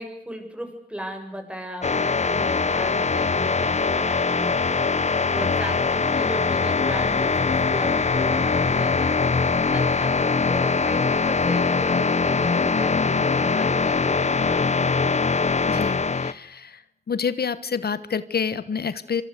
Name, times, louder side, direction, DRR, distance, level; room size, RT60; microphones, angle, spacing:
voice 1, 0.0-4.8 5.3-14.9, equal, 5° right, 5 dB, 7.9 m, -36 dB
sound 1, 1.8-16.3, left 4 dB, 45° left, 1.1 m, -22 dB
voice 2, 15.7-16.8 17.1-19.2, left 6 dB, 90° left, 14 dB, 1.3 m, -28 dB
26.0 x 25.5 x 8.3 m, 0.67 s
wide cardioid pair, 95°, 16 cm